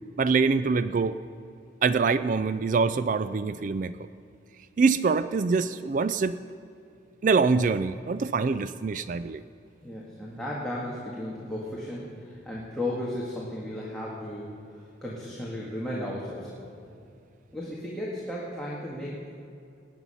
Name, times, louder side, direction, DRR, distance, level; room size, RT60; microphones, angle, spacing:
voice 1, 0.2-1.2 1.8-3.9 4.8-6.4 7.2-9.4, right 4 dB, 40° right, 14 dB, 0.3 m, -24 dB
voice 2, 9.8-14.6 15.0-16.7 17.5-19.3, left 1 dB, 5° left, -6 dB, 1.8 m, -35 dB
18.0 x 9.7 x 5.7 m, 2.5 s
head